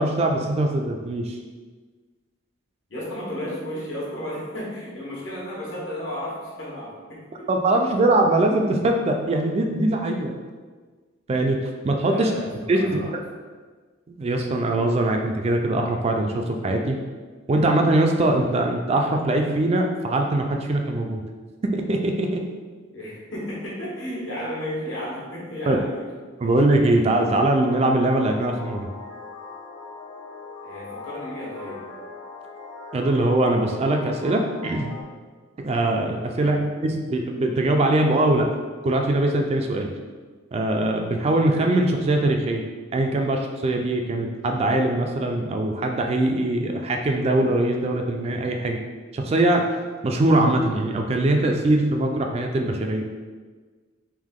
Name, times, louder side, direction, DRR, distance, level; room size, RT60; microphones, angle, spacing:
voice 1, 0.0-1.4 7.5-10.3 11.3-11.6 11.8-12.3 12.7-13.0 14.1-17.0 17.5-21.2 21.7-22.3 25.7-25.8 26.4-28.8 32.9-34.9 35.6-36.6 36.8-38.5 38.8-39.9 40.5-42.6 42.9-48.8 49.1-49.6 50.0-53.0, right 2 dB, 30° right, 3 dB, 0.3 m, -22 dB
voice 2, 2.9-7.5 12.0-13.2 22.9-26.0 26.4-26.5 30.6-31.8 36.3-36.6, equal, 70° left, -5 dB, 1.3 m, -33 dB
sound 1, 27.0-35.0, left 3 dB, 90° left, 1.0 m, -40 dB
3.6 x 2.8 x 3.6 m, 1.4 s
head